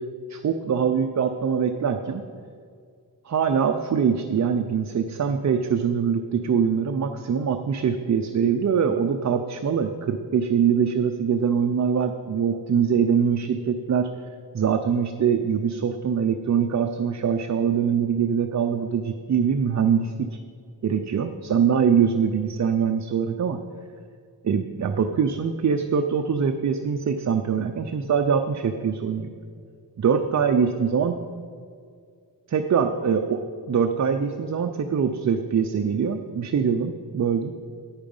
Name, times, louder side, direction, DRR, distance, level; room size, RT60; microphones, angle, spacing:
voice 1, 0.3-2.2 3.2-14.1 14.5-20.3 20.8-23.6 24.4-29.4 30.0-31.1 32.5-33.4 33.7-37.5, right 7 dB, 45° right, 5 dB, 0.5 m, -23 dB
9.7 x 8.8 x 5.3 m, 2.2 s
wide cardioid pair, 145°, 39 cm